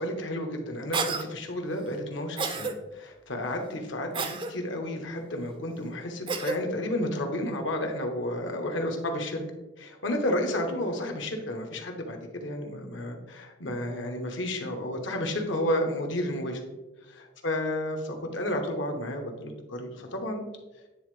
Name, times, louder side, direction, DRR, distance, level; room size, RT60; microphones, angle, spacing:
voice 1, 0.0-9.4 9.8-16.6 17.1-20.4, left 1 dB, 75° left, 3 dB, 1.0 m, -31 dB
Cough, 0.9-1.3 2.4-2.7 4.1-4.5 6.3-6.6, right 4 dB, 25° right, 0.4 m, -29 dB
9.5 x 3.7 x 3.2 m, 1.1 s
head